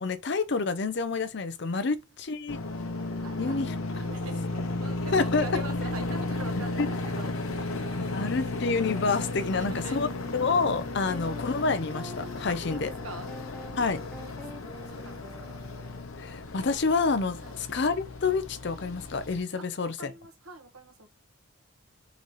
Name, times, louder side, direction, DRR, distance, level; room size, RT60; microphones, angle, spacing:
voice 1, 0.0-2.6 3.4-4.0 5.1-5.6 6.8-6.9 8.0-10.1 10.3-12.9 13.8-14.0 16.2-20.1, left 4 dB, 55° left, 0.5 m, -28 dB
sound 1, 2.5-19.4, left 2 dB, 80° left, 0.8 m, -34 dB
voice 2, 3.2-8.6 9.5-10.0 11.0-11.2 12.5-13.3 14.2-15.6 17.4-17.6 19.6-19.7 20.0-21.1, right 2 dB, 90° right, 1.3 m, -45 dB
sound 2, 8.9-9.1 9.8-16.1, equal, 5° left, 0.5 m, -46 dB
3.9 x 3.2 x 4.0 m
head